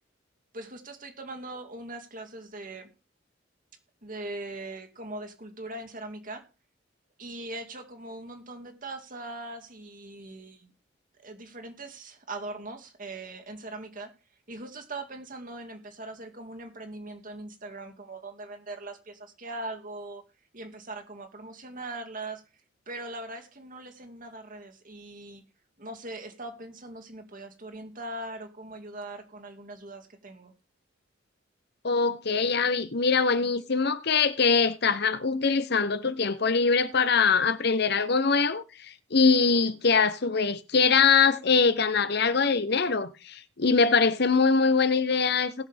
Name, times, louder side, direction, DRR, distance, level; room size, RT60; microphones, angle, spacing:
voice 1, 0.5-2.9 4.0-6.5 7.2-10.7 11.2-14.1 14.5-20.2 20.5-22.4 22.9-25.4 25.8-30.5, right 2 dB, 45° right, 2.2 m, -40 dB
voice 2, 31.8-45.5, left 5 dB, 60° left, 0.9 m, -23 dB
19.5 x 6.6 x 3.5 m
head